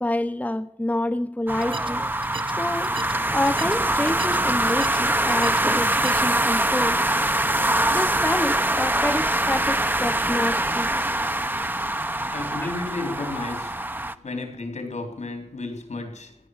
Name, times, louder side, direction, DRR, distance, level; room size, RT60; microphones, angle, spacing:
voice 1, 0.0-2.0 2.5-3.0 3.3-7.1 7.5-11.0 12.6-12.7, left 1 dB, 15° left, 0.9 m, -28 dB
sound 1, 1.5-14.1, right 1 dB, 15° right, 0.9 m, -23 dB
sound 2, 1.5-6.5, right 4 dB, 50° right, 0.7 m, -38 dB
voice 2, 12.3-13.8 14.2-16.4, left 2 dB, 85° left, 3.6 m, -32 dB
16.5 x 10.5 x 6.5 m
cardioid pair, 50°, 12 cm